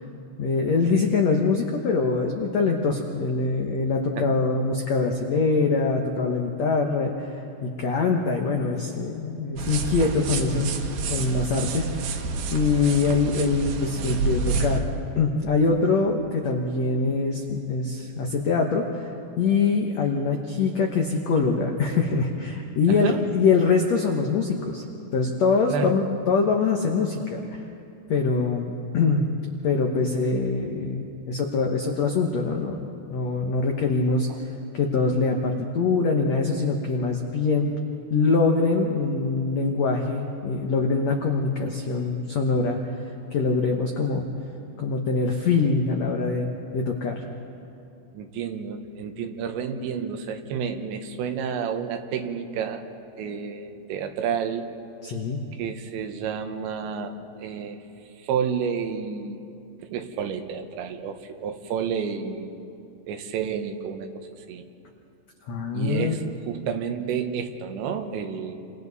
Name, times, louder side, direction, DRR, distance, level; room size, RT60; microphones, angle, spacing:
voice 1, 0.4-10.7 11.1-12.2 12.5-14.9 15.2-19.0 19.4-24.8 25.1-27.6 28.1-29.2 29.6-32.8 33.1-34.3 34.7-37.7 38.1-42.8 43.3-44.3 44.8-47.2 55.0-55.4 65.5-66.2, left 4 dB, 85° left, 2 dB, 1.5 m, -24 dB
sound 1, 9.6-14.8, right 4 dB, 65° right, 2.9 m, -28 dB
voice 2, 48.1-52.8 53.2-54.7 55.6-57.8 58.2-59.4 59.9-62.6 63.1-64.6 65.7-68.6, right 7 dB, 90° right, 6 dB, 3.5 m, -30 dB
30.0 x 25.5 x 4.1 m, 2.7 s
omnidirectional pair, 5.0 m